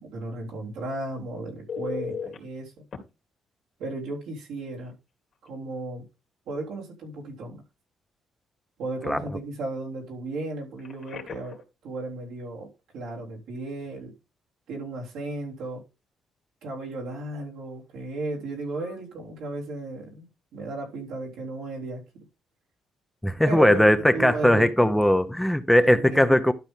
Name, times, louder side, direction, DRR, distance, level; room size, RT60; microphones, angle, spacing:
voice 1, 0.0-2.7 3.8-4.9 5.4-6.1 6.5-7.6 8.8-14.1 14.7-15.8 16.6-22.2 23.4-25.0 25.8-26.5, right 2 dB, 90° right, 3.6 m, -35 dB
Telephone, 1.7-2.4 2.9-3.0 4.8-4.9 5.3-5.5 10.8-11.6 18.7-18.9, left 6 dB, 55° left, 2.2 m, -36 dB
voice 2, 23.2-26.5, left 1 dB, 5° left, 0.8 m, -19 dB
12.0 x 5.3 x 3.7 m
cardioid pair, 90°, 0 cm